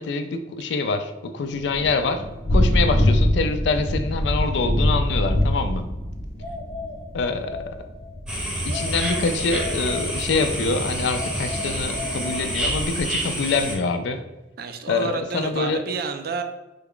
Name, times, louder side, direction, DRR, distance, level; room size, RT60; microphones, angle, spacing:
voice 1, 0.0-2.2 2.5-5.9 7.1-7.7 8.6-14.2 14.9-15.8, left 4 dB, 70° left, 9 dB, 0.3 m, -25 dB
Thunder / Rain, 1.5-11.0, left 1 dB, 40° left, 0.6 m, -24 dB
sound 1, 6.4-8.2 8.7-10.6 11.1-13.0, left 2 dB, 85° right, 1.4 m, -36 dB
sound 2, 8.3-13.7, equal, 5° right, 0.7 m, -28 dB
voice 2, 14.6-16.4, right 4 dB, 55° right, 7 dB, 0.4 m, -30 dB
3.4 x 2.3 x 3.6 m, 1.0 s
head